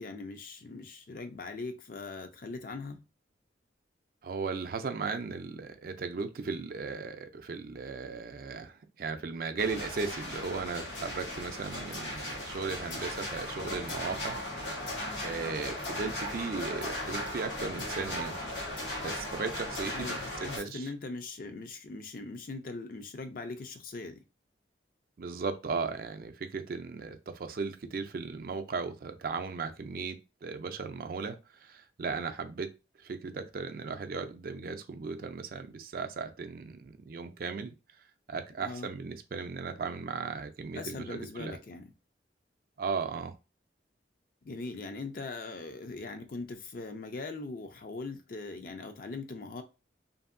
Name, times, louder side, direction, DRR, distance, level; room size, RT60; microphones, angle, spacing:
voice 1, 0.0-3.0 19.9-24.2 38.6-38.9 40.7-41.9 44.5-49.6, left 3 dB, 50° left, 0.4 m, -40 dB
voice 2, 4.2-14.4 15.2-18.4 19.0-20.9 25.2-30.2 30.4-31.4 31.6-32.7 33.0-37.7 38.3-41.6 42.8-43.3, right 4 dB, 55° right, 0.4 m, -36 dB
sound 1, 9.6-20.6, left 1 dB, 90° left, 1.1 m, -37 dB
2.7 x 2.6 x 2.5 m
head